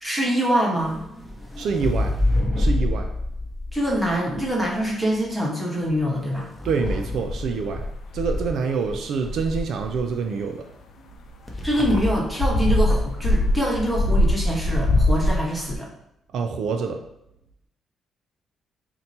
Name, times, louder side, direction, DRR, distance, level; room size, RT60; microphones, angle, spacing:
voice 1, 0.0-1.0 3.7-6.5 11.6-15.9, equal, 5° right, -4 dB, 1.0 m, -24 dB
sound 1, 0.8-4.9 5.8-8.2 11.5-12.4 12.8-13.2, left 1 dB, 15° left, 0.7 m, -27 dB
voice 2, 1.6-2.2 2.6-3.1 6.6-7.9 8.1-10.6 16.3-17.0, right 5 dB, 70° right, 4 dB, 0.3 m, -26 dB
sound 2, 6.8-8.6 8.9-9.0 9.2-10.1 12.1-15.8, left 1 dB, 65° left, 0.3 m, -23 dB
2.8 x 2.2 x 4.0 m, 0.81 s
cardioid pair, 90°, 0 cm